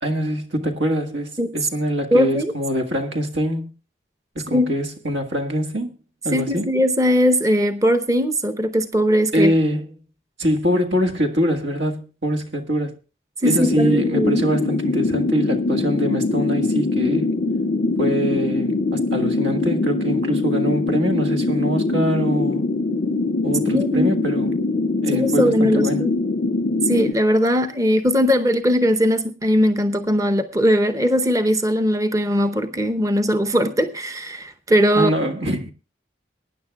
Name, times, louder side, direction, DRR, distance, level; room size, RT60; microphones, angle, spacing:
voice 1, 0.0-3.7 4.3-6.0 6.2-6.7 9.3-9.8 10.4-12.9 13.4-17.3 18.0-22.6 23.4-24.6 25.0-26.0 34.9-35.7, equal, 80° right, 1.7 m, -23 dB
voice 2, 2.1-2.5 4.5-4.7 6.3-9.5 13.4-14.4 23.7-24.1 25.1-26.1 26.8-35.1, equal, 20° right, 0.7 m, -19 dB
sound 1, 13.5-27.1, left 3 dB, 50° left, 0.5 m, -22 dB
23.5 x 9.9 x 2.3 m
head